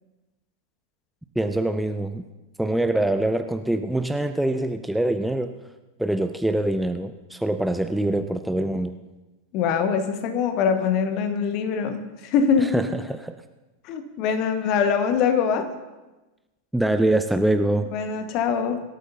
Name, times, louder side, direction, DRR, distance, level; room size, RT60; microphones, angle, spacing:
voice 1, 1.4-2.2 2.6-5.5 6.0-9.0 12.6-13.4 16.7-17.9, right 1 dB, 5° right, 8 dB, 0.5 m, -24 dB
voice 2, 9.5-12.7 13.8-15.7 17.9-18.8, left 6 dB, 40° left, 8 dB, 1.4 m, -23 dB
24.5 x 13.0 x 2.7 m, 1.1 s
figure-of-eight pair, 90°, 0 cm